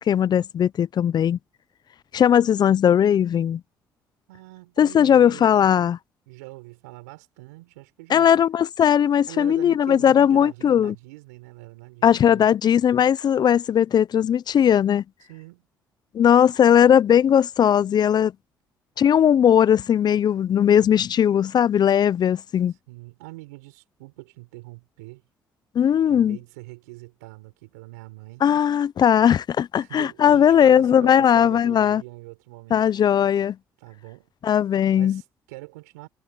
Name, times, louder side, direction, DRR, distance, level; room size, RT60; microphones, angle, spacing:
voice 1, 0.1-1.4 2.1-3.6 4.8-6.0 8.1-10.9 12.0-15.0 16.1-18.3 19.0-22.7 25.7-26.4 28.4-32.0 32.7-33.6 34.4-35.2, left 9 dB, 55° left, 0.7 m, -18 dB
voice 2, 4.3-5.4 5.7-5.9 6.3-8.4 9.3-12.5 15.3-15.7 22.9-25.2 26.1-28.4 29.8-32.9 33.8-34.3 34.9-36.1, right 22 dB, 90° right, 4.6 m, -43 dB
hypercardioid pair, 55°, 9 cm